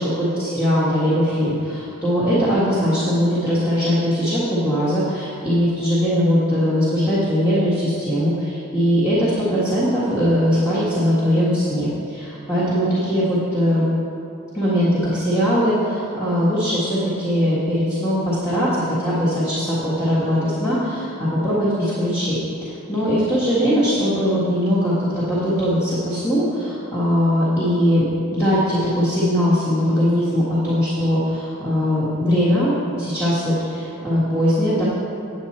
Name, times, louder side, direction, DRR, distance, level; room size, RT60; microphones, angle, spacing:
voice 1, 0.4-13.9 14.5-22.4 22.6-28.0 28.3-34.8, equal, 15° left, -11 dB, 1.6 m, -20 dB
9.0 x 8.2 x 4.3 m, 2.7 s
head